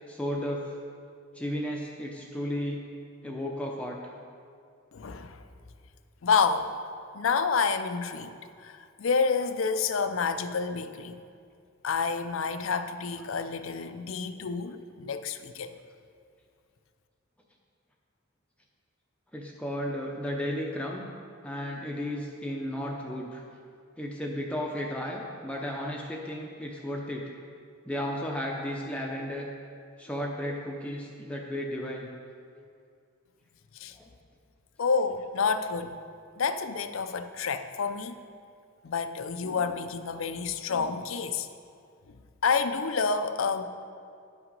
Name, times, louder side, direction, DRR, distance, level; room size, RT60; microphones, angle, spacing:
voice 1, 0.1-0.7 1.3-2.9 3.2-4.0 19.3-21.1 21.4-23.4 24.0-27.3 27.8-29.5 30.0-32.1 33.9-34.1, equal, 5° left, -1 dB, 0.6 m, -34 dB
voice 2, 4.9-5.4 6.2-6.7 7.1-11.2 11.8-15.7 33.8-33.9 34.8-36.0 36.4-38.2 38.8-41.5 42.4-43.6, left 5 dB, 70° left, 10 dB, 0.5 m, -29 dB
10.5 x 5.8 x 5.3 m, 2.3 s
head